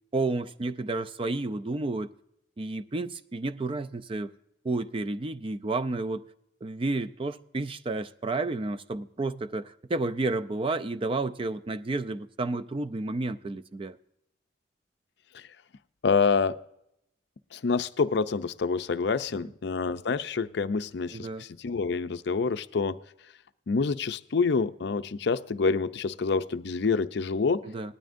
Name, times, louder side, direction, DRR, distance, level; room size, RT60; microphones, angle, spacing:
voice 1, 0.1-2.1 2.6-4.3 4.6-6.2 6.6-14.0 21.1-21.4 27.6-27.9, right 2 dB, 30° right, 0.4 m, -31 dB
voice 2, 16.0-16.6 17.5-23.0 23.7-27.6, left 4 dB, 60° left, 0.5 m, -27 dB
19.0 x 13.0 x 2.6 m
head